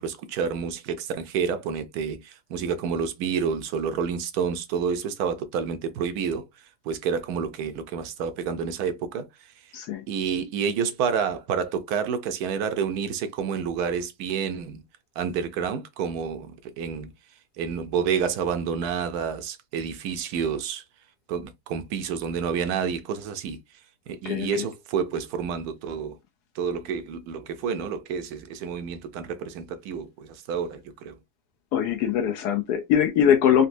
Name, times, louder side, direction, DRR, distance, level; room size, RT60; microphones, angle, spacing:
voice 1, 0.0-6.4 6.8-9.3 10.1-14.8 15.2-17.1 17.6-20.8 21.3-23.6 24.1-26.2 26.5-31.2, right 6 dB, 75° right, 1.0 m, -29 dB
voice 2, 9.7-10.0 24.3-24.6 31.7-33.7, left 9 dB, 80° left, 1.1 m, -22 dB
4.0 x 2.1 x 2.6 m
omnidirectional pair, 1.7 m